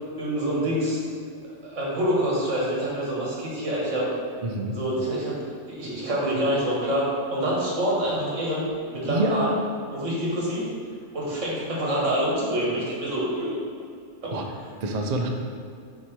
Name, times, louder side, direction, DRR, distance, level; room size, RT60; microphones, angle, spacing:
voice 1, 0.2-1.0 1.6-4.1 4.7-8.6 8.9-9.5 9.9-10.6 11.1-13.6, right 1 dB, 75° right, -6 dB, 1.9 m, -26 dB
voice 2, 4.4-4.8 9.1-9.6 14.3-14.5 14.8-15.3, right 1 dB, 55° right, 2 dB, 0.5 m, -26 dB
4.7 x 4.6 x 4.3 m, 2.2 s
omnidirectional pair, 1.3 m